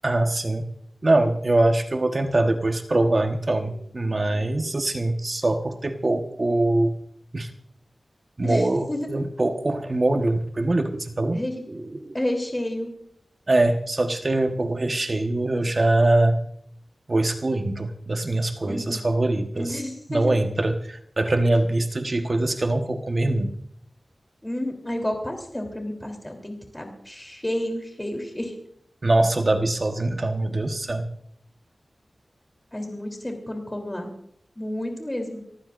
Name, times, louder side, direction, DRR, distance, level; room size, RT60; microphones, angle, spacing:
voice 1, 0.0-0.7 1.0-6.9 7.3-7.5 8.4-11.4 11.7-12.2 13.5-16.4 17.1-19.8 20.1-23.5 29.0-31.1, right 2 dB, 40° right, 5 dB, 1.2 m, -23 dB
voice 2, 8.4-9.1 11.3-11.6 12.1-12.9 18.6-19.0 19.5-20.3 24.4-28.5 32.7-34.1 34.5-35.4, left 1 dB, 15° left, 3 dB, 3.3 m, -30 dB
30.0 x 14.5 x 2.5 m, 0.68 s
wide cardioid pair, 80°, 0 cm